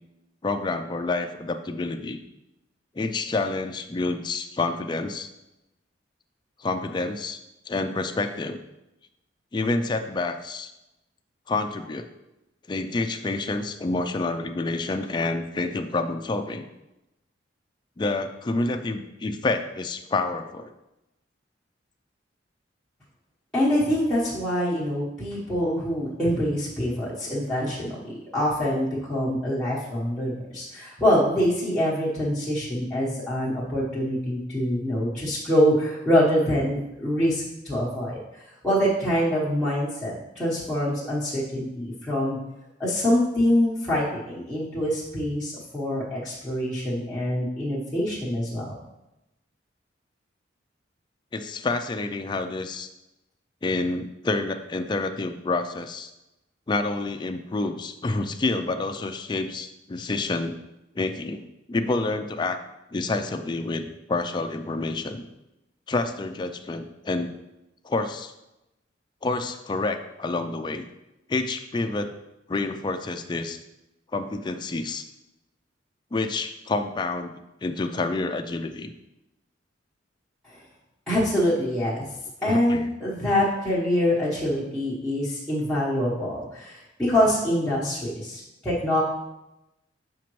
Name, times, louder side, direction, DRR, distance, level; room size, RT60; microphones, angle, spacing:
voice 1, 0.4-2.2 3.0-5.3 6.6-7.4 7.7-8.6 9.5-10.7 11.5-12.1 12.7-16.7 18.0-20.7 51.3-52.9 53.6-56.1 56.7-60.6 60.9-61.4 61.7-62.6 62.9-65.3 65.9-67.3 67.8-68.3 69.2-70.9 71.3-72.1 72.5-73.6 74.1-75.0 76.1-78.9 82.4-83.1, left 3 dB, 25° left, 6 dB, 0.4 m, -28 dB
voice 2, 23.5-28.0 28.3-42.4 42.8-48.8 81.1-82.1 82.4-89.0, equal, 5° left, -10 dB, 1.1 m, -25 dB
7.1 x 5.0 x 3.1 m, 0.93 s
head